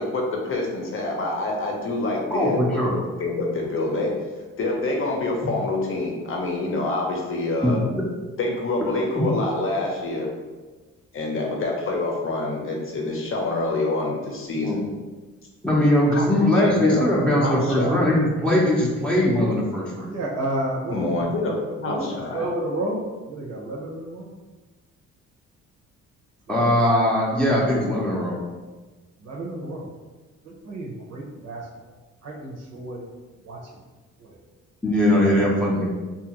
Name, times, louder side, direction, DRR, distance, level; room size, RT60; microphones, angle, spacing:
voice 1, 0.0-4.2 4.6-7.8 8.4-10.3 11.1-14.8 16.1-17.0 17.4-17.9 20.9-22.5, left 2 dB, 45° left, 0 dB, 0.8 m, -26 dB
voice 2, 2.3-3.0 7.6-8.0 9.1-9.2 14.6-15.0 15.6-20.1 26.5-28.4 34.8-35.9, left 1 dB, 5° left, -5 dB, 0.6 m, -20 dB
voice 3, 20.0-21.5 21.9-23.0 23.3-24.3 26.5-26.7 27.3-27.4 29.2-29.9 30.4-31.7 32.2-33.0 33.4-33.8 34.2-34.4 35.2-35.9, right 1 dB, 60° right, -3 dB, 0.6 m, -32 dB
2.7 x 2.4 x 2.9 m, 1.3 s
cardioid pair, 90°, 30 cm